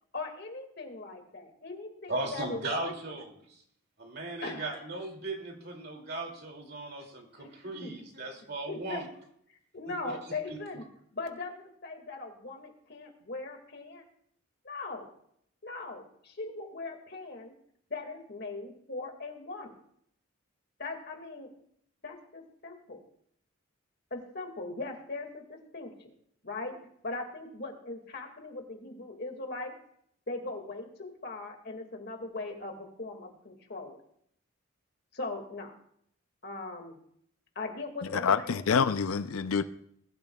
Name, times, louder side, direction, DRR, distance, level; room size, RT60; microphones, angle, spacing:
voice 1, 0.1-2.9 4.4-4.9 7.4-7.5 7.8-8.0 8.7-9.0 9.5-10.9 11.1-14.0 14.6-15.1 15.6-17.5 17.9-19.8 20.8-21.5 22.0-23.0 24.1-25.9 26.4-26.8 27.0-29.7 30.3-34.0 35.1-35.7 36.4-36.9 37.6-38.7, left 3 dB, 50° left, 2.1 m, -40 dB
voice 2, 2.1-3.6 4.0-9.1 10.0-10.2 10.5-10.6, right 2 dB, 45° right, 2.6 m, -37 dB
voice 3, 38.2-39.6, left 6 dB, 75° left, 0.5 m, -26 dB
20.5 x 12.5 x 2.3 m
head